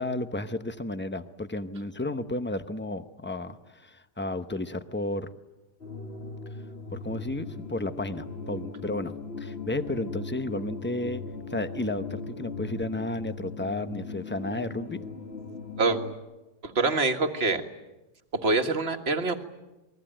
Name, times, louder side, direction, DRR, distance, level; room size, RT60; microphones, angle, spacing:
voice 1, 0.0-5.3 6.9-11.2 11.5-15.0, left 2 dB, 15° left, 10 dB, 0.4 m, -33 dB
sound 1, 5.8-16.2, left 4 dB, 35° left, 1.9 m, -39 dB
voice 2, 16.6-17.6 18.3-19.4, right 3 dB, 35° right, 6 dB, 1.9 m, -25 dB
28.0 x 21.5 x 9.0 m, 1.0 s
omnidirectional pair, 1.9 m